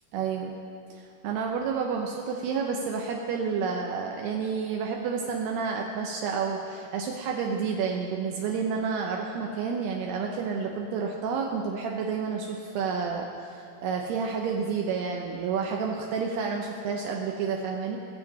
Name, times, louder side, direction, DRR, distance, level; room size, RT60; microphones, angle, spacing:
voice 1, 0.1-0.6 0.9-18.0, right 5 dB, 80° right, 0 dB, 2.6 m, -30 dB
20.5 x 7.2 x 4.1 m, 2.6 s
omnidirectional pair, 5.0 m